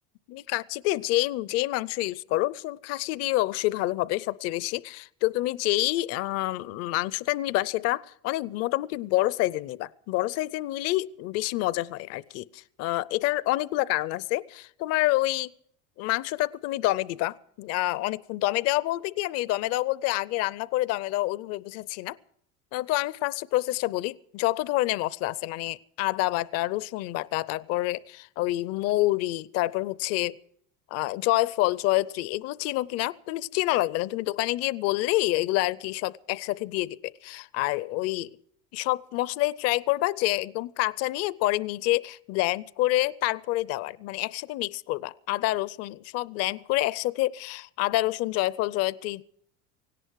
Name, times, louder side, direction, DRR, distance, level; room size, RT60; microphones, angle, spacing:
voice 1, 0.3-15.5 16.0-22.2 22.7-30.4 30.9-38.4 38.7-49.2, left 17 dB, 55° left, 21 dB, 0.5 m, -27 dB
17.5 x 17.0 x 4.6 m, 0.68 s
cardioid pair, 140°, 29 cm